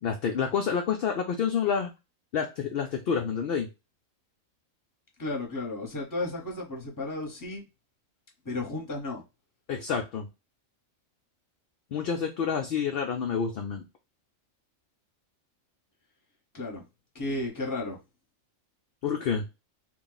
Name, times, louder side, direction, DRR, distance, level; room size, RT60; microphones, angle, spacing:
voice 1, 0.0-1.9 2.3-3.7 9.7-10.3 11.9-13.8 19.0-19.5, left 6 dB, 65° left, 0.6 m, -28 dB
voice 2, 5.2-7.6 8.4-9.2 16.5-16.8 17.1-18.0, left 2 dB, 15° left, 0.9 m, -33 dB
3.0 x 2.2 x 3.8 m
omnidirectional pair, 1.4 m